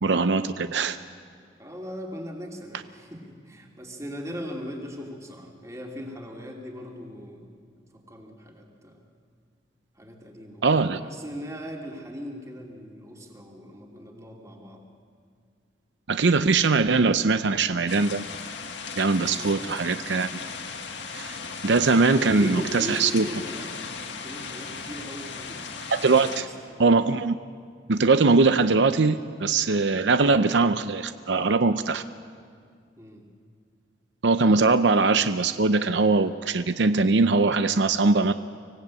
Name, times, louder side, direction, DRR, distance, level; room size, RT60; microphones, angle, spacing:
voice 1, 0.0-1.0 10.6-11.0 16.1-18.2 19.0-20.3 21.1-21.4 21.6-23.3 25.9-26.5 26.8-27.3 27.9-32.0 34.2-38.3, right 3 dB, 75° right, 11 dB, 0.7 m, -21 dB
voice 2, 1.6-7.5 7.9-9.0 10.0-10.6 11.0-14.8 19.3-19.8 21.8-23.7 24.2-25.6 26.4-26.9 33.0-33.3, equal, 15° right, 0 dB, 2.8 m, -39 dB
sound 1, 17.9-26.4, left 5 dB, 80° left, 1.9 m, -37 dB
25.0 x 18.0 x 8.4 m, 2.1 s
head